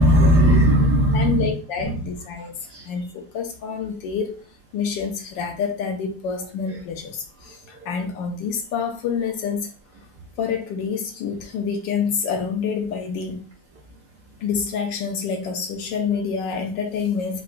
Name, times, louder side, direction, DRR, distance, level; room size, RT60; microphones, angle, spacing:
voice 1, 0.0-1.5 1.8-2.1 2.7-2.8 7.8-7.9, equal, 70° right, 1.0 m, -17 dB
voice 2, 1.1-2.5 2.9-4.4 4.7-7.6 7.9-9.7 10.4-13.4 14.4-17.4, left 6 dB, 70° left, 1.2 m, -27 dB
3.9 x 2.3 x 2.4 m
omnidirectional pair, 2.2 m